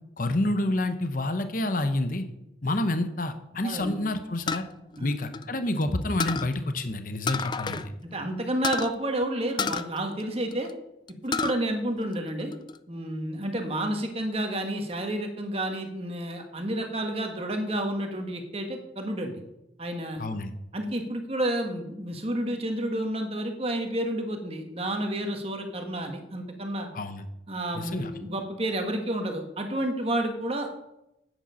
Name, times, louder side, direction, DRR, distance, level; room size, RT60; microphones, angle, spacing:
voice 1, 0.2-2.2 2.6-4.6 5.0-7.8 20.2-20.5 26.9-27.2 27.7-28.1, left 1 dB, 45° left, 9 dB, 0.9 m, -28 dB
voice 2, 3.6-4.0 5.0-5.1 7.7-10.7 11.2-12.5 12.9-19.3 19.8-20.2 20.7-26.9 27.5-30.7, right 1 dB, 30° right, 4 dB, 1.5 m, -30 dB
sound 1, 4.5-5.8 6.2-6.5 7.3-7.9 8.1-8.2 8.6-8.9 9.6-10.7 11.1-11.6 12.0-12.8, left 5 dB, 25° left, 0.4 m, -30 dB
9.9 x 9.1 x 5.6 m, 0.87 s
head